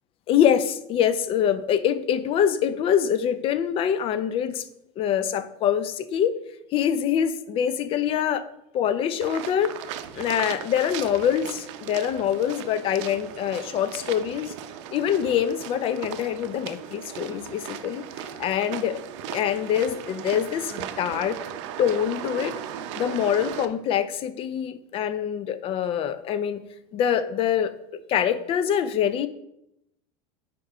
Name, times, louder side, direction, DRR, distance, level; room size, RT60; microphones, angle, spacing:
voice 1, 0.3-4.7 5.0-6.4 6.7-8.5 8.7-9.8 10.1-14.5 14.9-21.4 21.8-22.5 22.9-26.6 26.9-27.7 28.1-29.3, left 9 dB, 40° left, 13 dB, 0.5 m, -25 dB
sound 1, 9.2-23.7, right 10 dB, 75° right, 0.6 m, -37 dB
5.3 x 4.4 x 4.9 m, 0.81 s
supercardioid pair, 130°, 15 cm